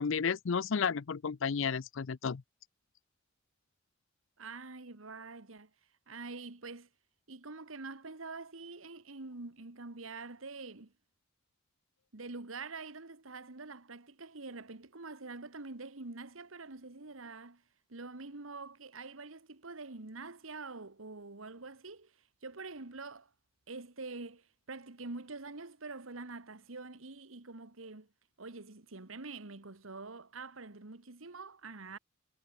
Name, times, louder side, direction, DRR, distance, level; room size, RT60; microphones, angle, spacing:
voice 1, 0.0-2.4, left 6 dB, 70° left, 0.5 m, -32 dB
voice 2, 4.4-5.7 6.1-6.9 7.3-10.9 12.1-17.6 17.9-22.1 22.4-23.3 23.7-28.1 28.4-32.0, right 3 dB, 80° right, 1.7 m, -45 dB
head